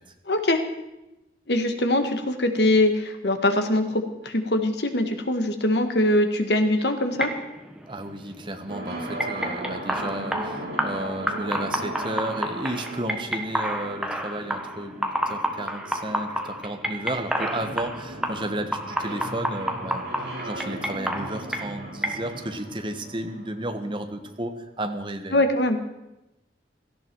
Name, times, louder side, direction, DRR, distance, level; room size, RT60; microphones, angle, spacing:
voice 1, 0.3-0.6 1.5-7.3 25.3-25.8, left 1 dB, 70° left, 7 dB, 1.7 m, -22 dB
sound 1, 7.1-22.6, equal, 5° right, 1.3 m, -31 dB
voice 2, 7.9-25.4, right 1 dB, 25° right, 6 dB, 1.2 m, -33 dB
sound 2, 8.7-24.5, right 1 dB, 65° right, 4.9 m, -38 dB
17.5 x 14.0 x 4.6 m, 0.93 s
head